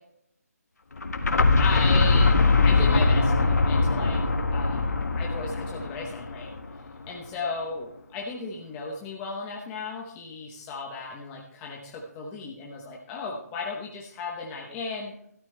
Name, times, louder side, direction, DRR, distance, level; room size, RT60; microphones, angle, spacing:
sound 1, 1.0-6.8, left 3 dB, 75° left, 1.6 m, -22 dB
voice 1, 1.6-2.3 2.6-4.2 4.5-6.5 7.1-15.1, left 4 dB, 10° left, -1 dB, 1.0 m, -35 dB
13.0 x 12.5 x 3.3 m, 0.72 s
hypercardioid pair, 165°, 9 cm